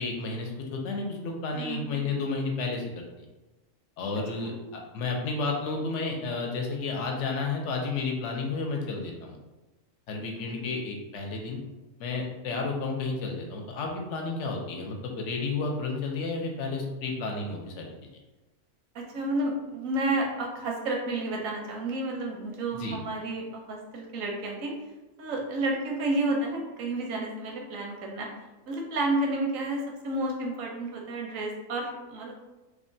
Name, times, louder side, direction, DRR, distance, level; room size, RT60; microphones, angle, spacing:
voice 1, 0.0-3.3 4.0-9.4 10.1-11.6 12.0-17.9 22.8-23.0, left 3 dB, 70° left, 1 dB, 0.8 m, -32 dB
voice 2, 1.6-2.3 4.3-4.6 10.3-10.8 18.9-24.7 25.2-28.3 28.7-32.3, right 2 dB, 85° right, 0 dB, 1.0 m, -31 dB
2.9 x 2.1 x 2.6 m, 1.1 s
omnidirectional pair, 1.4 m